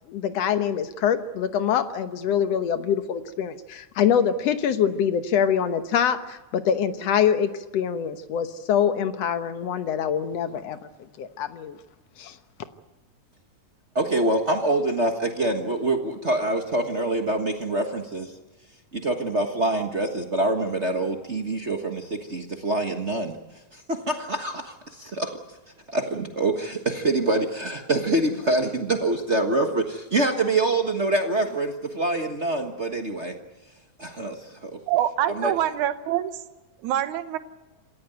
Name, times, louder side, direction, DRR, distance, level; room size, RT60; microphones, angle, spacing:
voice 1, 0.1-10.8 11.2-11.8 12.2-12.4, left 8 dB, 65° left, 10 dB, 2.0 m, -24 dB
voice 2, 13.9-18.3 18.9-23.3 23.7-25.4 25.9-33.3 34.0-34.8 35.3-35.5, right 2 dB, 45° right, 4 dB, 0.9 m, -25 dB
voice 3, 34.9-36.3 36.8-37.4, right 12 dB, 75° right, 11 dB, 2.4 m, -25 dB
27.0 x 15.5 x 9.2 m, 1.1 s
omnidirectional pair, 3.6 m